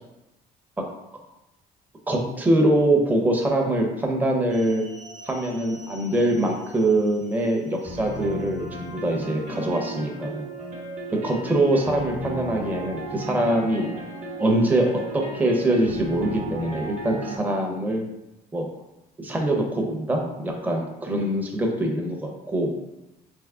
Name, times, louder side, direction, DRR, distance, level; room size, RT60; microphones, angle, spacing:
voice 1, 2.1-4.8 5.2-10.5 11.2-13.9 14.4-18.0 18.5-18.7 19.2-22.8, right 1 dB, 10° right, 0 dB, 0.6 m, -23 dB
sound 1, 4.5-17.4, right 2 dB, 45° right, 0.9 m, -36 dB
3.5 x 3.0 x 3.5 m, 0.94 s
cardioid pair, 110°, 17 cm